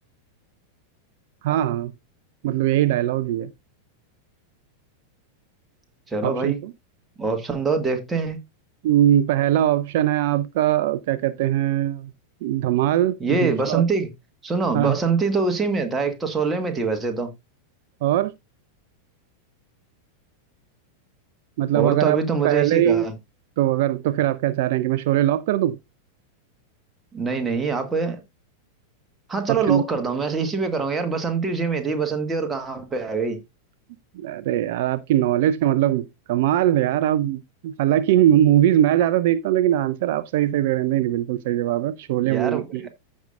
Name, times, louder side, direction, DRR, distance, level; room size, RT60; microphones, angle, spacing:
voice 1, 1.4-1.9 2.4-3.5 6.2-6.7 8.8-12.1 12.4-13.8 14.7-15.0 18.0-18.3 21.6-23.1 23.6-25.8 29.5-29.8 34.1-42.9, right 12 dB, 50° right, 0.4 m, -21 dB
voice 2, 6.1-6.6 7.2-8.4 13.2-14.1 14.4-17.3 21.7-23.1 27.1-28.2 29.3-33.4 42.2-42.9, right 4 dB, 15° right, 1.7 m, -24 dB
15.0 x 5.4 x 2.4 m
figure-of-eight pair, 90°, 0 cm